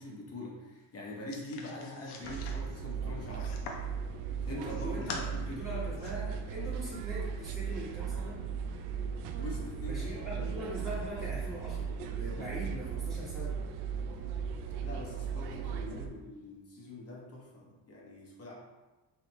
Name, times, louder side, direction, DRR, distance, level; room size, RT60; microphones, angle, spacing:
voice 1, 0.0-3.6 4.5-5.7 9.4-10.5 14.8-18.5, left 2 dB, 35° left, -4 dB, 1.0 m, -44 dB
sound 1, 1.3-3.9 4.4-5.3 5.7-6.1, left 4 dB, 70° left, 0.7 m, -44 dB
sound 2, 2.2-16.1, right 6 dB, 75° right, 0.5 m, -37 dB
voice 2, 4.6-5.1 5.5-8.4 9.9-13.6, equal, 10° right, -12 dB, 1.1 m, -41 dB
4.1 x 3.2 x 3.0 m, 1.2 s
cardioid pair, 130°, 41 cm